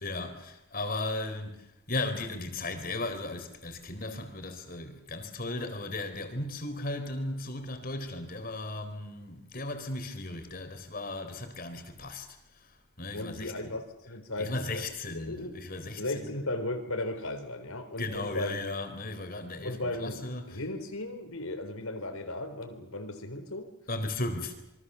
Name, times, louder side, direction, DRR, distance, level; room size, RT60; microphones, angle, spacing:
voice 1, 0.0-1.5 1.9-12.3 13.0-13.5 14.4-16.3 18.0-19.7 20.0-20.4 23.9-24.5, left 2 dB, 40° left, 3.9 m, -36 dB
voice 2, 13.1-15.6 16.0-18.6 19.6-23.7, left 2 dB, 70° left, 4.2 m, -36 dB
27.0 x 24.5 x 7.1 m
head